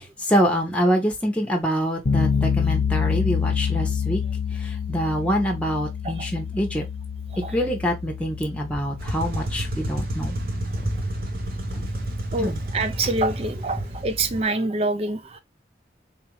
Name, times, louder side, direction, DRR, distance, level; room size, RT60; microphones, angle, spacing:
voice 1, 0.0-4.2 4.5-6.8 7.5-10.4 10.8-11.1 11.7-11.8 12.4-12.6, equal, 5° left, 0.8 m, -25 dB
sound 1, 2.1-12.9, left 6 dB, 55° left, 0.6 m, -28 dB
sound 2, 9.0-14.4, right 1 dB, 55° right, 0.8 m, -30 dB
voice 2, 12.3-15.4, right 2 dB, 35° right, 0.4 m, -26 dB
3.9 x 2.5 x 2.9 m
head